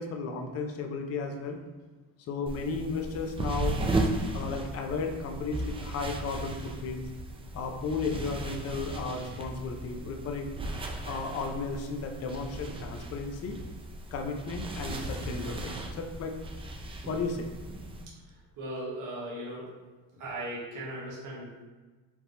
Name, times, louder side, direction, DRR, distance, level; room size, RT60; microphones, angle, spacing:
voice 1, 0.0-1.6 2.3-3.8 4.3-7.1 7.5-10.5 11.0-13.6 14.1-16.3 17.1-17.5, left 4 dB, 40° left, 3 dB, 0.5 m, -34 dB
sound 1, 2.5-18.0, right 2 dB, 15° right, 0.3 m, -36 dB
voice 2, 18.6-19.7 20.2-21.7, right 1 dB, 50° right, -6 dB, 1.4 m, -38 dB
5.1 x 3.0 x 3.1 m, 1.3 s
cardioid pair, 150°, 40 cm